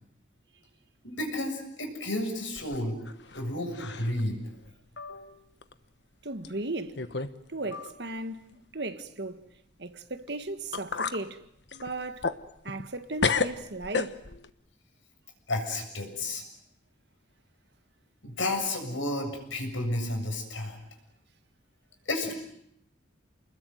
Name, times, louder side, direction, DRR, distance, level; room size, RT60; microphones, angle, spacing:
voice 1, 1.0-3.0 3.3-4.4 5.0-5.4 7.7-7.8 15.5-16.4 18.2-20.8 22.1-22.3, left 1 dB, 85° left, 7.3 m, -32 dB
sound 1, 2.6-3.5 3.7-4.2 4.6-4.7 5.6-5.7 6.4-6.5 7.0-7.4 7.6-7.7 10.3-10.4 10.7-11.2 11.7-12.9 13.2-14.5, left 4 dB, 65° left, 1.2 m, -31 dB
voice 2, 6.2-7.1 7.5-11.4 11.8-12.3 12.6-14.2, right 2 dB, 60° right, 1.7 m, -36 dB
29.5 x 21.0 x 9.3 m
head